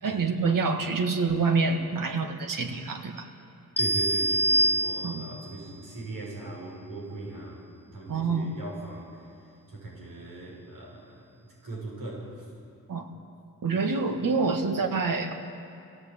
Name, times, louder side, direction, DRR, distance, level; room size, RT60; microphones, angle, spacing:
voice 1, 0.0-3.3 5.0-5.2 8.1-8.5 12.9-13.1 13.6-15.3, right 4 dB, 65° right, 6 dB, 1.9 m, -27 dB
sound 1, 3.8-5.5, right 1 dB, 5° left, 1.3 m, -25 dB
voice 2, 3.8-7.6 7.9-9.2 9.7-12.5, right 2 dB, 85° right, -3 dB, 6.3 m, -39 dB
22.5 x 17.0 x 8.7 m, 2.7 s
cardioid pair, 85°, 35 cm